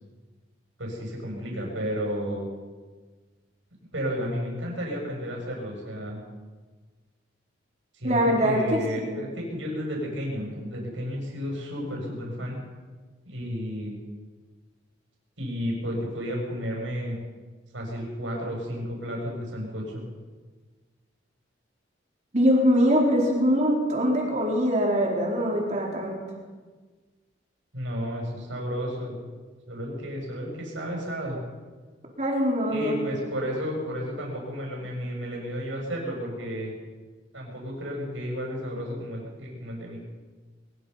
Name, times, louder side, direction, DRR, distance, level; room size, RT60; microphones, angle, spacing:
voice 1, 0.8-2.5 3.9-6.2 7.9-12.6 13.2-14.0 15.4-17.2 17.7-20.0 27.7-29.1 29.7-31.4 32.7-36.7 37.3-40.0, equal, 80° right, -1 dB, 8.0 m, -32 dB
voice 2, 8.0-9.2 22.3-26.2 32.2-33.1, equal, 40° right, -2 dB, 4.2 m, -23 dB
23.0 x 22.5 x 5.8 m, 1.4 s
head